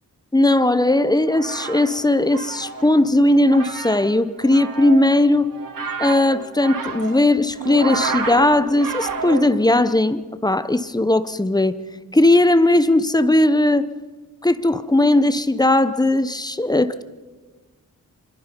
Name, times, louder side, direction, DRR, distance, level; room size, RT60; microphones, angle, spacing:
voice 1, 0.3-5.5 6.0-11.8 12.1-13.9 14.4-17.0, left 1 dB, 10° left, 0.9 m, -18 dB
sound 1, 1.1-9.8, right 5 dB, 85° right, 2.4 m, -30 dB
26.0 x 21.5 x 5.3 m
cardioid pair, 70°, 33 cm